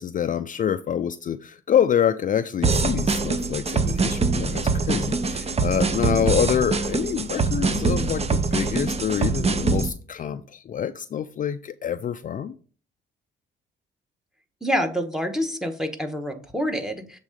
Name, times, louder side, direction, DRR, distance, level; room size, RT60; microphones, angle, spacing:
voice 1, 0.0-12.5, left 9 dB, 45° left, 0.4 m, -26 dB
sound 1, 2.6-9.9, right 4 dB, 30° right, 0.7 m, -24 dB
voice 2, 14.6-17.2, equal, ahead, 1.2 m, -27 dB
7.3 x 3.7 x 5.2 m
cardioid pair, 90°, 20 cm